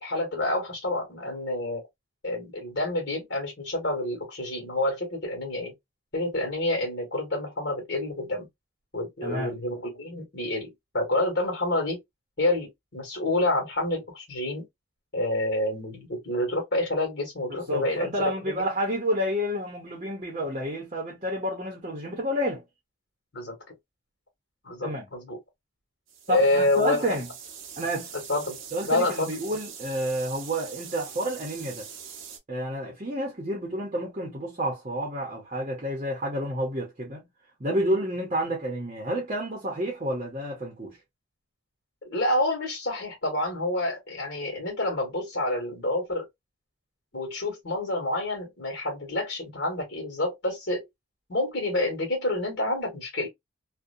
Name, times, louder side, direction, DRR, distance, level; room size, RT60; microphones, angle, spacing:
voice 1, 0.0-1.8 2.2-5.7 6.1-8.5 8.9-12.0 12.4-14.7 15.1-18.7 23.3-23.6 24.6-25.4 26.3-27.1 28.3-28.6 28.9-29.3 42.0-46.3 47.1-50.9 51.3-53.3, left 1 dB, 55° left, 1.4 m, -28 dB
voice 2, 9.2-9.5 17.5-22.6 24.8-25.0 26.3-27.3 27.8-28.1 28.7-31.9 32.5-37.3 37.6-41.0, equal, 35° right, 0.7 m, -30 dB
sound 1, 26.1-32.4, right 7 dB, 70° right, 0.7 m, -43 dB
2.7 x 2.1 x 2.4 m
head